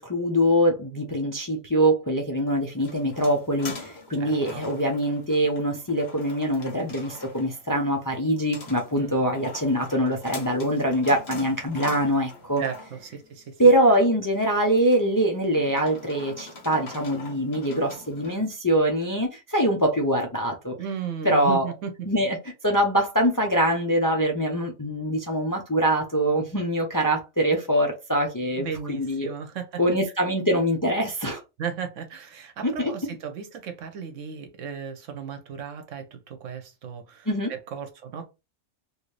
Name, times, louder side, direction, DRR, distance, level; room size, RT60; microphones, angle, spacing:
voice 1, 0.0-12.6 13.6-20.8 21.2-21.7 22.1-22.4 22.6-29.3 29.8-31.4 32.6-32.9 37.3-37.5, right 1 dB, 25° left, 0.4 m, -23 dB
sound 1, 2.5-18.3, left 2 dB, 60° left, 1.2 m, -43 dB
voice 2, 4.2-4.6 9.0-9.1 12.6-13.6 20.8-22.1 28.6-29.8 31.6-38.3, right 7 dB, 80° right, 1.1 m, -35 dB
3.1 x 2.7 x 3.2 m
omnidirectional pair, 1.3 m